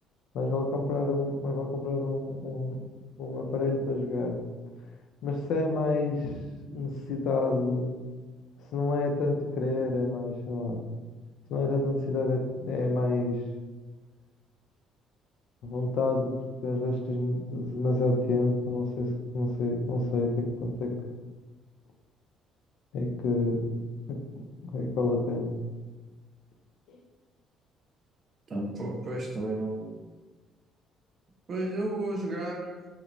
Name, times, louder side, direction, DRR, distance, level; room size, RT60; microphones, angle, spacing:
voice 1, 0.3-2.8 3.2-4.4 5.2-6.4 6.7-7.9 8.7-10.8 11.5-13.4 15.6-16.3 16.6-20.9 22.9-23.6 24.1-24.2 24.7-25.5 26.9-27.0, left 2 dB, 75° left, 2 dB, 0.4 m, -28 dB
voice 2, 28.5-30.0 31.5-32.9, right 1 dB, 35° right, -1 dB, 0.5 m, -32 dB
2.9 x 2.1 x 2.5 m, 1.3 s
cardioid pair, 135°, 0 cm